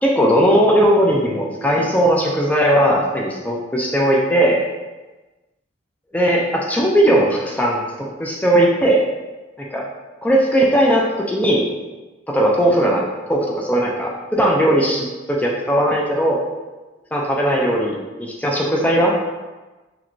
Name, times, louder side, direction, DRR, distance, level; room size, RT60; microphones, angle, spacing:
voice 1, 0.0-4.6 6.1-9.0 9.6-9.8 10.2-11.6 12.3-13.0 13.3-16.4 17.1-19.2, right 1 dB, 10° left, -2 dB, 0.4 m, -18 dB
5.7 x 2.2 x 2.6 m, 1.2 s
head